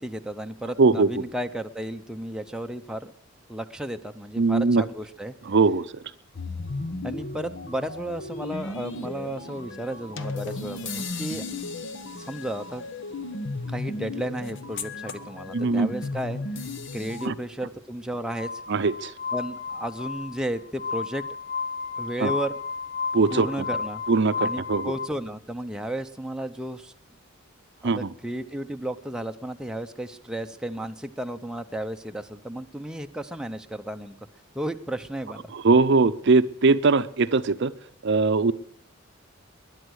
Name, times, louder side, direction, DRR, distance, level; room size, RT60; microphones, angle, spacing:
voice 1, 0.0-3.1 3.5-5.3 7.0-11.4 12.2-12.8 13.7-16.4 16.9-18.6 19.3-21.2 22.0-22.5 23.3-24.0 24.4-26.9 27.8-34.1 34.5-35.5, right 1 dB, 5° right, 5 dB, 0.7 m, -33 dB
voice 2, 0.8-1.2 4.4-4.8 5.5-5.9 15.5-15.9 17.2-17.3 18.7-19.1 22.2-22.3 23.1-23.5 24.1-24.9 27.8-28.1 35.5-37.7 38.0-38.5, right 3 dB, 60° right, 13 dB, 0.6 m, -21 dB
sound 1, 6.3-17.3, left 3 dB, 65° left, 1.1 m, -35 dB
Glass, 18.3-25.1, left 5 dB, 35° left, 1.5 m, -32 dB
21.0 x 10.5 x 6.3 m, 0.64 s
head